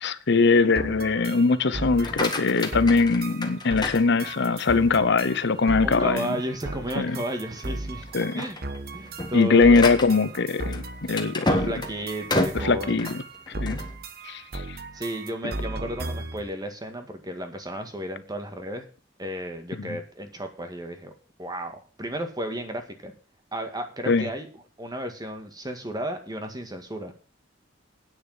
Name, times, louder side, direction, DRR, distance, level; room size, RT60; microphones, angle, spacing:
voice 1, 0.0-6.4 7.0-7.2 8.1-8.4 9.3-11.6 12.6-13.2 13.6-13.8 14.2-14.4 19.8-19.9 24.1-24.3, left 4 dB, 65° left, 15 dB, 0.8 m, -21 dB
sound 1, 0.8-16.5, right 2 dB, 55° right, 1.1 m, -36 dB
sound 2, 1.9-4.7 5.2-5.6 6.1-6.2 6.6-6.8 7.4-7.7 8.1-13.9, left 2 dB, 25° left, 1.8 m, -30 dB
voice 2, 5.8-8.1 8.3-8.6 8.9-9.9 11.4-13.1 14.9-18.9 19.2-21.1 21.4-23.1 23.5-24.5 24.8-27.1, equal, 20° right, 6 dB, 1.9 m, -33 dB
9.4 x 6.6 x 7.4 m, 0.39 s
head